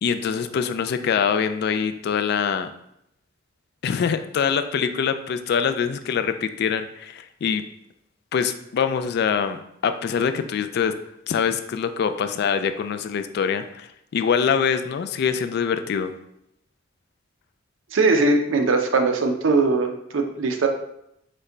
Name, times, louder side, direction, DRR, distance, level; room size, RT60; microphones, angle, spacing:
voice 1, 0.0-2.7 3.8-7.7 8.3-16.1, left 6 dB, 55° left, 10 dB, 0.3 m, -24 dB
voice 2, 17.9-20.7, right 3 dB, 75° right, 5 dB, 0.6 m, -20 dB
5.2 x 2.2 x 3.8 m, 0.77 s
head